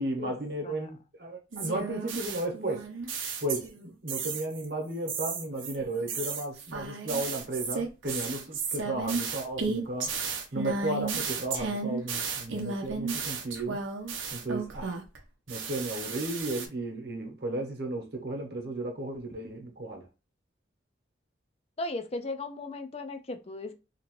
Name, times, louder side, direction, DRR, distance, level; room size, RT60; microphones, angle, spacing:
voice 1, 0.0-2.9 3.4-10.1 10.5-13.8 14.3-14.9 15.5-20.0, right 2 dB, 55° right, 1.0 m, -34 dB
sound 1, 1.5-3.8 4.1-4.6 5.1-15.2 15.5-16.7, right 4 dB, 90° right, 0.6 m, -34 dB
voice 2, 21.8-23.7, left 2 dB, 30° left, 0.4 m, -36 dB
2.9 x 2.5 x 3.0 m
head